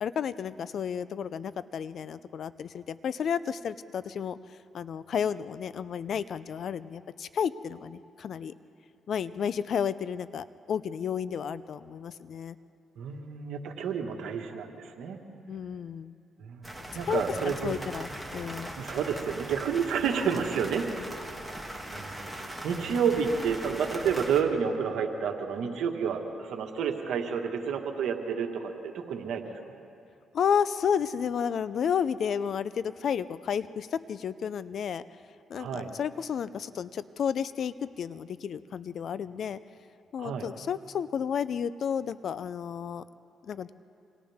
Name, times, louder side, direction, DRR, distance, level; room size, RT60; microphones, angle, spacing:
voice 1, 0.0-4.4 4.7-8.5 9.1-12.6 15.5-16.1 17.1-18.7 30.3-35.0 35.5-39.6 40.1-43.0 43.4-43.7, left 7 dB, 60° left, 15 dB, 0.6 m, -32 dB
voice 2, 13.0-15.2 16.4-16.7 16.9-17.8 18.8-20.9 21.9-29.6 35.5-35.9 40.2-40.5, right 6 dB, 75° right, 3 dB, 1.8 m, -30 dB
sound 1, 16.6-24.4, right 1 dB, ahead, 2.4 m, -40 dB
28.5 x 26.0 x 3.6 m, 2.6 s
cardioid pair, 90°, 0 cm